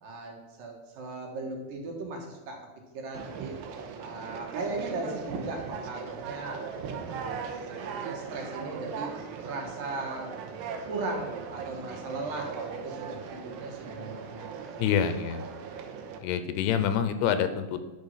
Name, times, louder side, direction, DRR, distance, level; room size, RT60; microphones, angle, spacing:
voice 1, 0.0-2.6 2.9-3.6 4.0-6.7 6.9-9.1 9.4-10.3 10.9-14.8, right 3 dB, 60° right, 1 dB, 3.0 m, -38 dB
Conversation, 3.1-16.2, right 6 dB, 90° right, 3.2 m, -39 dB
voice 2, 14.8-15.4 16.2-17.9, left 8 dB, 80° left, 10 dB, 2.6 m, -27 dB
10.5 x 6.5 x 5.6 m, 1.2 s
omnidirectional pair, 4.8 m